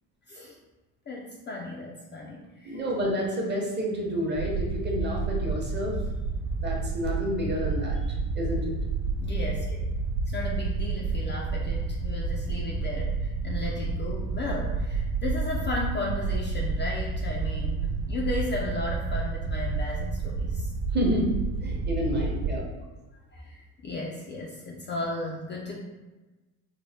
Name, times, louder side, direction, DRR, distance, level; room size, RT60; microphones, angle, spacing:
voice 1, 1.1-2.8 9.2-9.6 10.3-20.7 23.3-25.8, left 2 dB, 30° left, -2 dB, 0.4 m, -35 dB
voice 2, 2.6-6.0 6.6-8.0 8.3-8.7 20.9-21.3 21.6-22.6, equal, 25° right, -2 dB, 0.8 m, -29 dB
sound 1, 4.3-22.6, right 4 dB, 85° right, 0.6 m, -30 dB
3.9 x 2.1 x 3.4 m, 1.1 s
cardioid pair, 125°, 38 cm